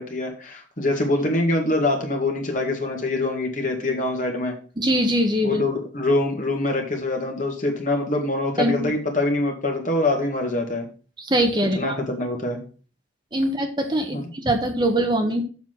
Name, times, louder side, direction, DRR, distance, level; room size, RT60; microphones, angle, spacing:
voice 1, 0.0-4.5 5.4-10.9 11.8-12.6 14.1-14.2, left 2 dB, 40° left, 2 dB, 2.0 m, -24 dB
voice 2, 4.8-5.6 8.6-8.9 11.2-12.0 13.3-15.4, right 1 dB, 25° right, 4 dB, 1.1 m, -22 dB
7.3 x 5.9 x 6.0 m, 0.37 s
head